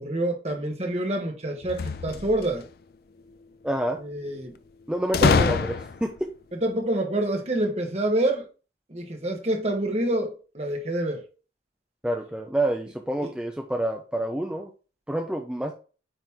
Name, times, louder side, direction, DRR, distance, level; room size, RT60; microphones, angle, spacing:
voice 1, 0.0-2.6 4.0-4.5 5.2-5.5 6.6-8.4 8.9-11.2 13.2-13.3, right 1 dB, 35° right, 1.2 m, -27 dB
sound 1, 1.6-2.7 5.1-6.2, left 4 dB, 55° left, 0.4 m, -24 dB
voice 2, 3.6-4.0 4.9-6.3 12.0-14.7 15.1-15.7, right 1 dB, 5° right, 0.5 m, -28 dB
8.9 x 3.1 x 3.5 m
head